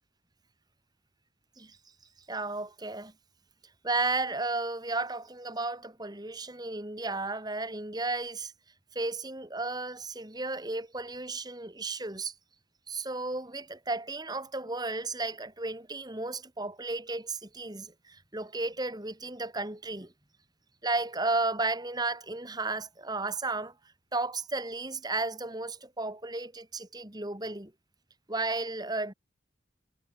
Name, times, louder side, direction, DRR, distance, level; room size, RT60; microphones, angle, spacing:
voice 1, 2.3-3.1 3.8-8.5 8.9-12.3 12.9-20.1 20.8-23.7 24.1-26.5 26.8-27.7 28.3-29.1, right 3 dB, 20° right, 2.9 m, -33 dB
head